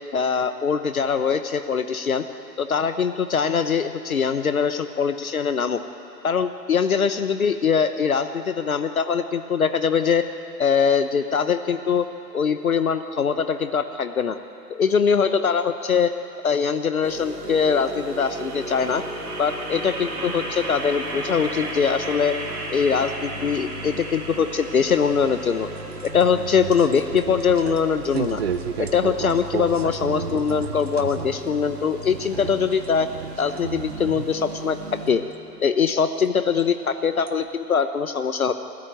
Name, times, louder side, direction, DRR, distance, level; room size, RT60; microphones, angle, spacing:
voice 1, 0.1-2.2 2.6-5.8 6.2-10.3 10.6-12.1 12.3-14.4 14.7-16.1 16.4-19.0 19.4-22.4 22.7-25.7 26.0-28.4 28.8-33.1 33.4-35.2 35.6-38.5, left 6 dB, 55° left, 10 dB, 1.0 m, -22 dB
sound 1, 17.0-35.1, right 2 dB, 60° right, 3.2 m, -35 dB
sound 2, 25.8-31.5 31.8-32.9 33.1-34.3 35.3-35.4 36.6-36.7 37.3-37.4, right 7 dB, 40° right, 0.8 m, -32 dB
29.5 x 14.0 x 9.2 m, 2.9 s
figure-of-eight pair, 135°, 50 cm